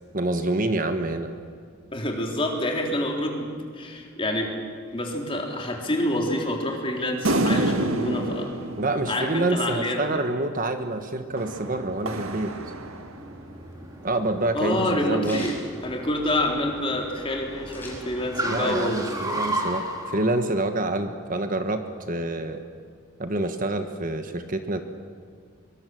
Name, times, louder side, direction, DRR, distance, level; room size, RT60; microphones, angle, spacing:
voice 1, 0.1-1.3 8.8-12.5 14.0-15.5 18.5-22.6 23.2-24.8, right 2 dB, 40° right, 7 dB, 1.3 m, -27 dB
voice 2, 1.9-4.5 4.9-8.5 9.1-10.2 14.5-19.4, left 1 dB, 25° left, 1 dB, 3.5 m, -27 dB
sound 1, 7.2-9.9 11.4-13.4, right 1 dB, 85° right, 2.0 m, -28 dB
Car, 11.4-20.2, right 1 dB, 15° right, 3.3 m, -35 dB
sound 2, 13.5-16.7 17.0-17.1 17.3-18.6 18.9-20.1, left 1 dB, 10° left, 6.2 m, -43 dB
24.5 x 23.5 x 7.8 m, 2.2 s
head